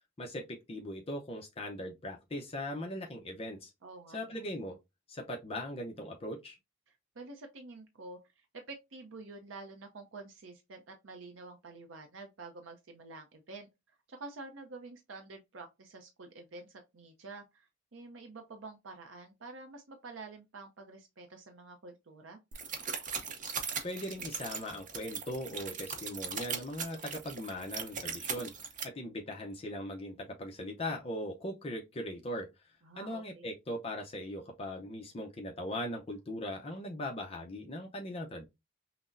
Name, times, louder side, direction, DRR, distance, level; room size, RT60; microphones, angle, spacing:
voice 1, 0.2-3.7 4.1-4.8 5.1-6.6 23.6-28.5 28.8-32.5 33.0-38.5, left 1 dB, 30° left, 0.6 m, -39 dB
voice 2, 3.8-4.4 6.9-13.7 14.1-22.4 32.8-33.5, right 3 dB, 80° right, 0.6 m, -48 dB
sound 1, 22.5-28.8, right 6 dB, 40° right, 0.7 m, -39 dB
5.8 x 2.1 x 2.5 m
head